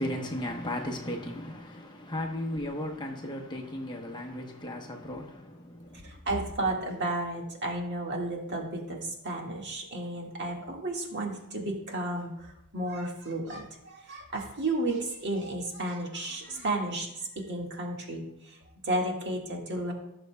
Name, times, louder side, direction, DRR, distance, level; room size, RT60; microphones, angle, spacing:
voice 1, 0.0-6.0, left 1 dB, 20° left, 1.0 m, -35 dB
voice 2, 5.9-19.9, right 2 dB, 50° right, 1.8 m, -33 dB
16.5 x 6.5 x 2.3 m
head